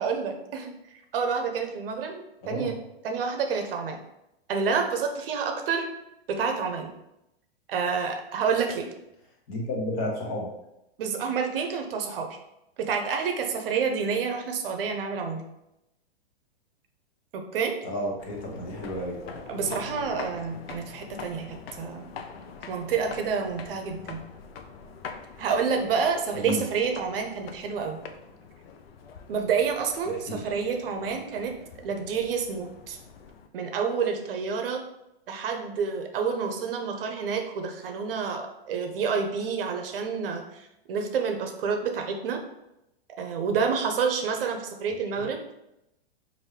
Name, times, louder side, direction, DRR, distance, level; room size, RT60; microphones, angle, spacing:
voice 1, 0.0-2.8 3.0-4.0 4.5-5.9 6.3-6.9 7.7-8.9 11.0-12.4 12.8-15.5 17.3-17.7 19.5-22.1 22.7-24.2 25.4-28.0 29.3-31.6 31.8-33.0 33.5-34.8 35.3-42.4 43.2-45.4, right 5 dB, 60° right, 4 dB, 0.7 m, -29 dB
voice 2, 9.5-10.5 17.8-19.4 26.4-26.6 30.1-30.4, left 1 dB, 35° left, -1 dB, 1.0 m, -32 dB
sound 1, 18.2-33.5, left 5 dB, 65° left, 0.6 m, -44 dB
4.3 x 2.6 x 3.3 m, 0.86 s
hypercardioid pair, 155°, 32 cm